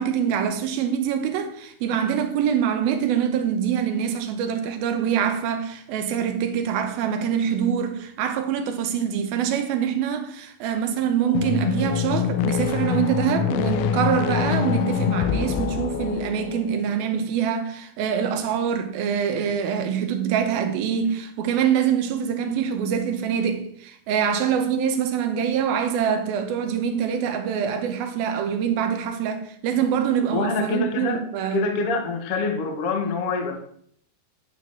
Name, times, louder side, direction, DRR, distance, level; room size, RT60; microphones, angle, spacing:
voice 1, 0.0-31.6, right 8 dB, 75° right, 2.5 m, -24 dB
sound 1, 11.3-16.9, left 8 dB, 85° left, 2.6 m, -25 dB
voice 2, 30.3-31.2 31.5-33.6, left 4 dB, 65° left, 1.4 m, -25 dB
9.6 x 4.7 x 7.1 m
omnidirectional pair, 4.8 m